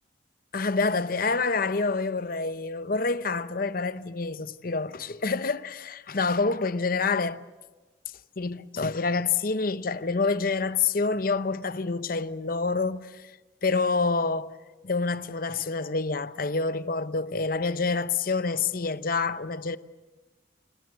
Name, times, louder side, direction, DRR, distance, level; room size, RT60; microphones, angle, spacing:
voice 1, 0.5-7.5 8.4-13.3 13.6-14.5 14.8-19.8, left 4 dB, 50° left, 0.8 m, -27 dB
28.5 x 18.0 x 8.3 m
head